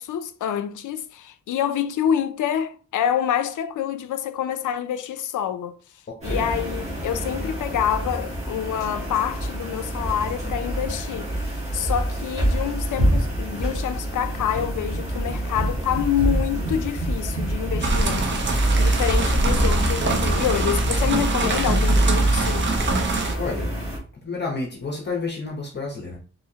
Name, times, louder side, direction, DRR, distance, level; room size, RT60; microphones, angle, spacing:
voice 1, 0.0-5.8 6.2-11.4 11.7-22.7, left 9 dB, 85° left, 0.5 m, -27 dB
sound 1, 6.2-24.0, right 1 dB, 25° right, 1.4 m, -25 dB
sound 2, 17.8-23.3, right 3 dB, 40° right, 0.6 m, -24 dB
voice 2, 23.4-23.7 24.2-26.2, left 4 dB, 35° left, 0.7 m, -30 dB
4.2 x 2.7 x 2.8 m
wide cardioid pair, 165°, 30 cm